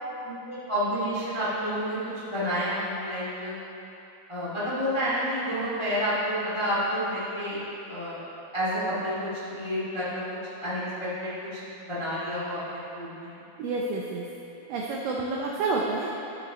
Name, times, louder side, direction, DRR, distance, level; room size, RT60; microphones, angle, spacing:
voice 1, 0.2-2.0 2.3-3.5 4.3-8.2 8.5-10.2 10.6-11.3 11.8-13.4, equal, 35° left, -10 dB, 0.4 m, -29 dB
voice 2, 13.6-14.2 14.7-16.1, right 3 dB, 85° right, -2 dB, 2.0 m, -29 dB
11.5 x 7.7 x 3.1 m, 2.9 s
omnidirectional pair, 4.7 m